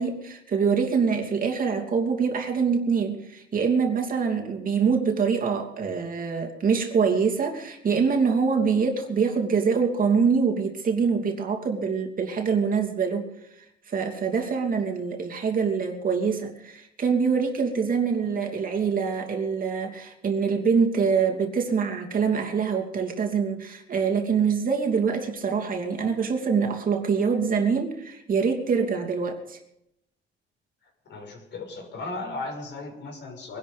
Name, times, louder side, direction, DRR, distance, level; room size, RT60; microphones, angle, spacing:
voice 1, 0.0-13.3 13.6-29.6, right 5 dB, 45° right, 2 dB, 2.9 m, -25 dB
voice 2, 31.1-33.6, left 3 dB, 65° left, 2 dB, 5.9 m, -36 dB
23.0 x 11.5 x 5.2 m, 0.82 s
cardioid pair, 120°, 20 cm